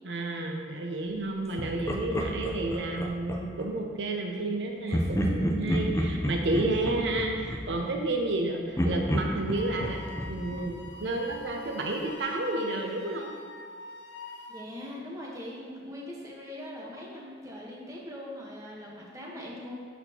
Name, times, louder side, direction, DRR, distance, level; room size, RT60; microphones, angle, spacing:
voice 1, 0.0-13.3, right 2 dB, 75° right, 2 dB, 0.7 m, -31 dB
Laughter, 1.6-3.7 4.9-8.4 8.8-11.5, equal, 15° left, 0.6 m, -31 dB
Wind instrument woodwind instrument, 9.6-14.7, left 3 dB, 75° left, 0.5 m, -44 dB
voice 2, 14.5-19.7, left 1 dB, 20° right, -4 dB, 1.2 m, -41 dB
12.5 x 4.3 x 2.9 m, 2.2 s
head